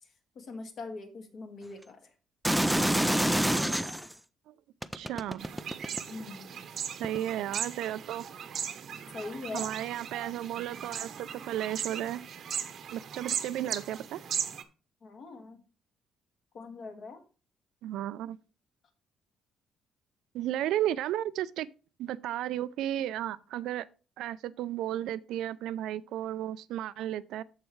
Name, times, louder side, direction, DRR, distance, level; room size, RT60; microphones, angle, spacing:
voice 1, 0.4-2.1 6.0-6.6 9.1-9.7 15.0-15.6 16.5-17.2, left 3 dB, 50° left, 1.9 m, -42 dB
sound 1, 2.4-4.1 4.8-6.2 7.0-7.2, right 1 dB, 5° right, 0.4 m, -27 dB
voice 2, 4.9-5.5 7.0-8.3 9.5-12.2 12.9-14.2 17.8-18.4 20.3-21.7 22.0-23.9 24.2-27.4, right 12 dB, 80° right, 0.4 m, -34 dB
sound 2, 5.4-14.6, right 8 dB, 50° right, 0.9 m, -38 dB
13.5 x 4.6 x 3.2 m
cardioid pair, 155°, 0 cm